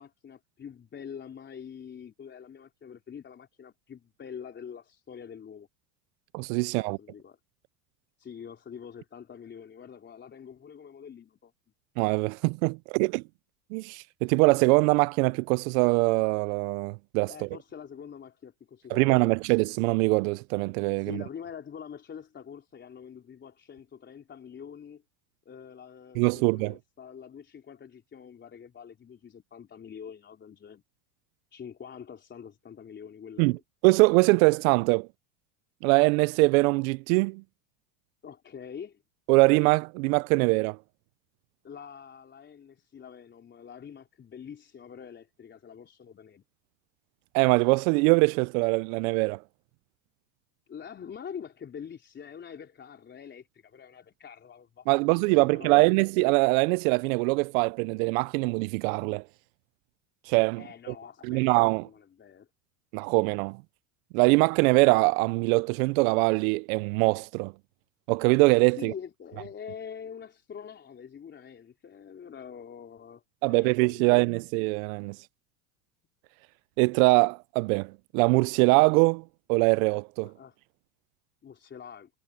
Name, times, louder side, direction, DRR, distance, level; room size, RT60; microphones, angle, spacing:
voice 1, 0.0-5.7 6.8-7.4 8.2-11.5 17.3-19.3 21.0-25.0 25.5-30.8 31.5-33.6 38.2-39.0 41.6-46.4 50.7-55.0 55.2-56.0 60.6-61.5 61.8-62.5 68.7-73.2 73.5-74.1 80.2-80.6 81.4-82.1, left 7 dB, 25° left, 3.9 m, -45 dB
voice 2, 6.3-7.0 12.0-13.2 13.7-17.5 18.9-21.2 26.2-26.8 33.4-33.6 33.8-35.1 35.8-37.4 39.3-40.8 47.3-49.4 54.9-59.2 60.3-60.6 61.3-61.8 62.9-63.6 64.1-67.5 68.1-68.9 73.4-75.2 76.8-79.2 79.5-80.3, right 27 dB, 75° right, 0.5 m, -23 dB
supercardioid pair, 130°, 42 cm